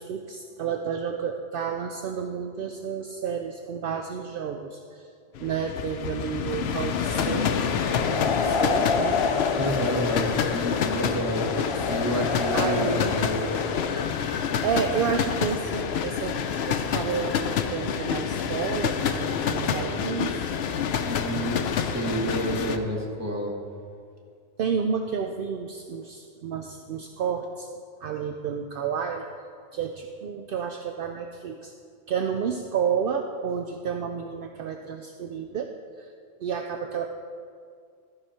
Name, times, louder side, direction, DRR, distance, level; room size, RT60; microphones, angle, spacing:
voice 1, 0.0-5.1 5.4-7.5 8.1-9.2 12.5-13.3 14.6-20.5 24.6-27.7 28.0-29.2 29.7-31.7 32.1-35.7 36.0-36.1 36.4-37.1, right 7 dB, 65° right, 5 dB, 0.7 m, -31 dB
sound 1, 5.4-22.8, left 7 dB, 80° left, 0.8 m, -28 dB
sound 2, 7.0-14.1, left 4 dB, 50° left, 0.3 m, -28 dB
voice 2, 9.6-11.6 11.9-13.6 21.0-23.5, equal, 15° right, -2 dB, 1.5 m, -29 dB
13.0 x 4.9 x 5.7 m, 2.2 s
omnidirectional pair, 1.1 m